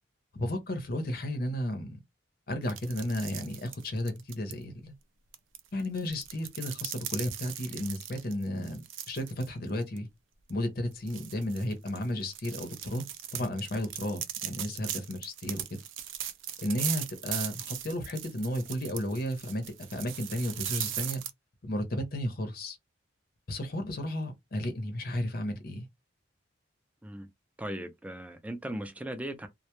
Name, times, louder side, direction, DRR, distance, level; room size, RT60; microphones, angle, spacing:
voice 1, 0.3-2.0 2.5-4.9 5.7-10.1 10.5-13.0 13.3-15.8 16.6-19.6 19.9-21.2 21.6-22.8 23.5-25.9, left 1 dB, 50° left, 0.6 m, -33 dB
sound 1, 2.7-4.5 5.3-9.5 9.8-10.0 10.5-10.6 11.1-21.3, right 11 dB, 75° right, 0.4 m, -38 dB
voice 2, 27.6-29.5, right 1 dB, 5° right, 0.3 m, -38 dB
2.1 x 2.0 x 2.9 m
head